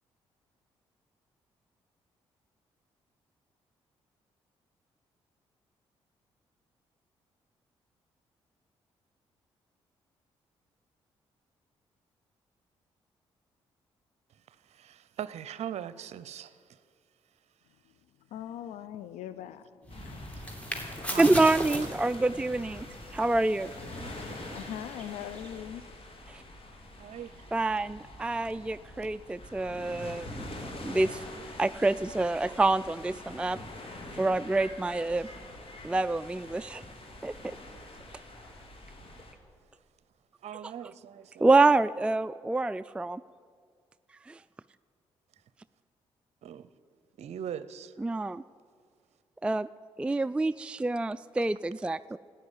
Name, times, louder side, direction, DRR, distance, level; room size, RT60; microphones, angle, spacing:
voice 1, 14.5-16.8 20.4-20.5 21.1-21.6 27.0-27.5 40.4-41.5 46.4-46.7 47.2-47.9, right 9 dB, 60° right, 0.6 m, -40 dB
voice 2, 18.3-20.9 24.5-26.1, left 10 dB, 75° left, 0.5 m, -42 dB
sound 1, 19.9-39.3, left 1 dB, 50° left, 2.5 m, -45 dB
sound 2, 19.9-25.6, equal, 10° left, 2.7 m, -40 dB
voice 3, 21.2-22.9 23.1-23.7 26.3-26.4 27.5-30.4 30.8-31.2 31.6-33.6 34.1-35.3 35.8-36.8 37.2-37.3 41.4-43.2 44.3-44.4 48.0-48.4 49.4-49.7 50.0-52.2, right 2 dB, 10° right, 0.3 m, -27 dB
12.0 x 8.7 x 9.9 m
hypercardioid pair, 45°, 12 cm